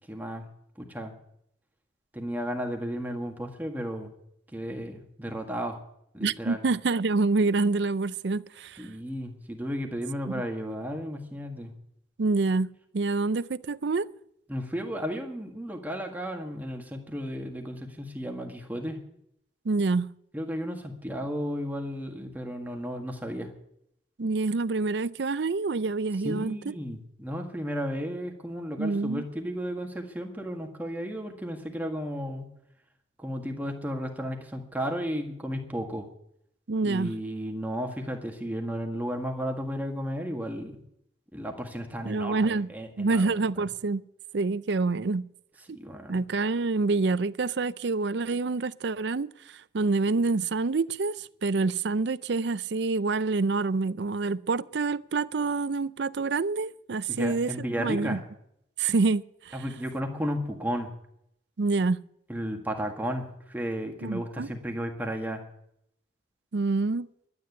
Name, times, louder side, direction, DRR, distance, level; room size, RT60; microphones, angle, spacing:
voice 1, 0.1-0.5 0.8-1.1 2.1-4.1 4.5-5.8 6.1-6.6 8.8-11.7 14.5-19.0 20.3-23.5 26.2-32.5 33.2-36.1 36.8-40.8 41.3-43.3 43.6-43.7 45.7-46.2 57.1-58.2 59.5-60.9 62.3-65.4, equal, 10° right, 1.7 m, -34 dB
voice 2, 6.2-8.9 10.3-10.4 12.2-14.1 19.6-20.1 24.2-26.7 28.8-29.2 36.7-37.1 42.0-42.7 43.0-44.0 44.3-45.2 46.1-58.2 58.8-59.6 61.6-62.0 64.0-64.5 66.5-67.1, right 3 dB, 65° right, 0.5 m, -27 dB
12.0 x 9.5 x 9.4 m
head